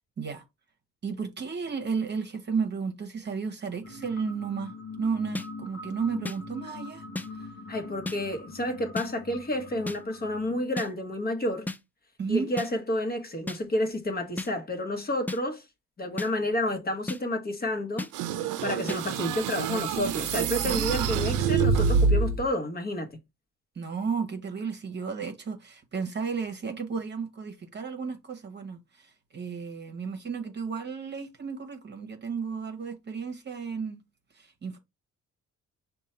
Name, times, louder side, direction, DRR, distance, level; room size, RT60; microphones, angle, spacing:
voice 1, 1.0-7.1 7.4-7.5 12.2-12.5 20.7-21.3 23.7-34.0 34.3-34.8, right 5 dB, 35° right, 1.0 m, -33 dB
sound 1, 3.8-10.6, left 3 dB, 70° left, 1.1 m, -43 dB
sound 2, 5.4-5.5 6.3-6.4 7.2-7.3 8.1-8.2 9.0-9.1 9.9-10.0 10.8-10.9 11.7-11.8 12.6-12.7 13.5-13.6 14.4-14.5 15.3-15.4 16.2-16.3 17.1-17.2 18.0-18.1 18.9-19.0, left 2 dB, 5° left, 0.3 m, -33 dB
voice 2, 7.7-11.7 12.3-15.6 16.0-18.1 18.6-23.1, left 1 dB, 30° left, 1.0 m, -30 dB
sound 3, 18.1-22.5, right 5 dB, 85° right, 0.5 m, -26 dB
5.4 x 2.3 x 4.3 m
cardioid pair, 90°, 30 cm